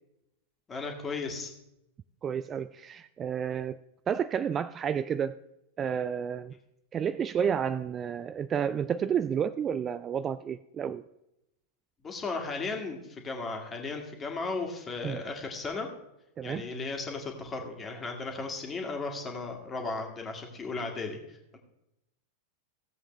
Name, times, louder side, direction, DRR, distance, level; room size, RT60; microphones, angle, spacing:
voice 1, 0.7-1.5 12.0-15.9 16.4-21.6, left 3 dB, 20° left, 2.0 m, -35 dB
voice 2, 2.2-3.8 4.1-5.4 5.8-6.5 6.9-11.0 15.0-15.2 16.4-16.7, right 8 dB, 25° right, 0.3 m, -30 dB
16.5 x 7.9 x 3.2 m
figure-of-eight pair, 90°, 0 cm